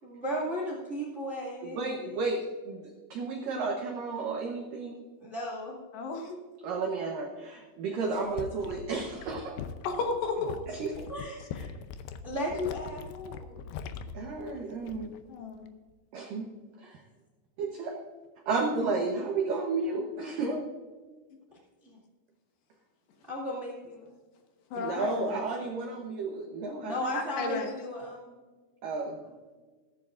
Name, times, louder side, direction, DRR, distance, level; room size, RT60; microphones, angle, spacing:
voice 1, 0.0-2.2 5.2-5.8 11.1-11.7 12.2-13.6 21.8-22.0 23.3-24.2 26.8-28.4 29.2-29.3, equal, 35° right, -3 dB, 1.1 m, -35 dB
voice 2, 1.6-5.0 6.6-9.6 10.7-11.1 14.1-15.1 16.1-16.5 16.8-17.0 17.6-18.0 18.5-20.6 24.8-27.1 28.8-29.2, right 3 dB, 80° right, 2 dB, 2.0 m, -32 dB
voice 3, 5.9-6.4 9.8-10.6 15.3-15.6 24.7-25.4 27.4-27.7, left 4 dB, 70° left, 3 dB, 3.2 m, -33 dB
sound 1, 8.1-15.2 15.5-15.9, left 7 dB, 85° left, 2.3 m, -42 dB
14.5 x 14.5 x 2.5 m, 1.4 s
omnidirectional pair, 5.5 m